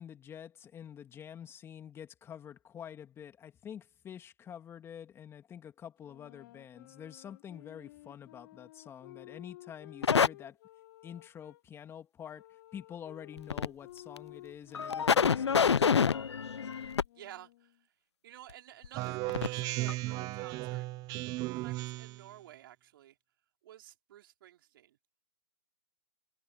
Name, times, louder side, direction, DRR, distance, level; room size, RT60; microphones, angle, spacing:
voice 1, 0.0-10.6 11.0-16.2, left 9 dB, 15° left, 2.4 m, -48 dB
sound 1, 6.0-11.6 12.3-17.8, left 16 dB, 50° left, 4.9 m, -54 dB
sound 2, 10.0-10.3 13.4-13.7 14.2-14.3 14.7-17.0 18.8-18.9 19.3-19.5 19.9-20.0, left 6 dB, 85° left, 1.0 m, -26 dB
voice 2, 17.1-17.8 18.2-20.9 21.5-23.2 23.6-25.0, right 13 dB, 55° right, 5.5 m, -52 dB
Speech synthesizer, 18.9-22.3, right 20 dB, 30° right, 1.2 m, -35 dB
hypercardioid pair, 130°, 14 cm